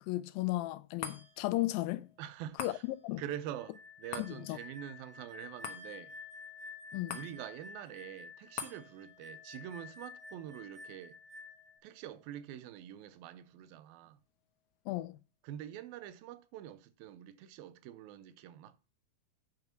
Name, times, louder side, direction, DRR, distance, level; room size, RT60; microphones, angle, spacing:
voice 1, 0.0-2.1 2.6-3.2 4.2-4.6 6.9-7.2 14.9-15.2, left 17 dB, 85° left, 2.3 m, -35 dB
sound 1, 1.0-13.6 14.0-14.1, left 8 dB, 65° left, 1.5 m, -50 dB
voice 2, 2.2-2.8 3.2-6.2 7.1-11.2 11.8-14.2 15.4-18.8, right 11 dB, 90° right, 2.6 m, -45 dB
sound 2, 3.5-11.8, left 4 dB, 50° right, 2.9 m, -51 dB
8.8 x 5.8 x 5.9 m
omnidirectional pair, 4.1 m